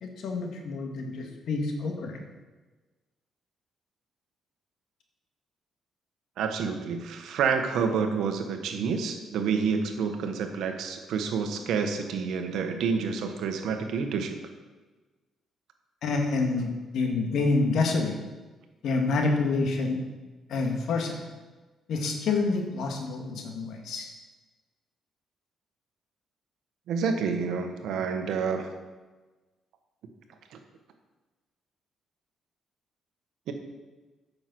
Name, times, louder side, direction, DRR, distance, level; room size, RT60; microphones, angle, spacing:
voice 1, 0.0-2.2 16.0-18.1 18.8-20.0 20.5-21.2 21.9-24.1, left 3 dB, 70° left, 2 dB, 1.9 m, -27 dB
voice 2, 6.4-14.4 26.9-28.7 33.5-33.6, right 5 dB, 80° right, 6 dB, 1.3 m, -28 dB
9.3 x 6.7 x 6.0 m, 1.2 s
cardioid pair, 90°, 0 cm